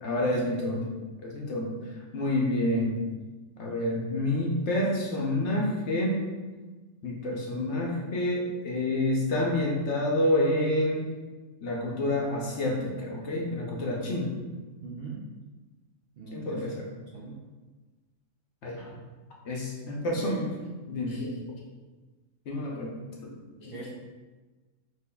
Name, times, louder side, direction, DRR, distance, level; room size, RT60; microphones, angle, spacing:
voice 1, 0.0-0.9 1.2-1.7 2.1-3.0 3.6-6.2 7.0-11.1 11.6-14.3 16.3-16.9 18.6-18.9 19.4-20.5 20.9-21.4 22.5-22.9 23.2-23.3 23.6-23.9, left 1 dB, 60° left, -2 dB, 0.9 m, -28 dB
voice 2, 14.8-15.2 16.2-16.8 17.1-17.4 20.2-20.5 23.7-23.9, right 4 dB, 60° right, -4 dB, 0.6 m, -40 dB
6.0 x 2.9 x 2.3 m, 1.3 s
omnidirectional pair, 1.5 m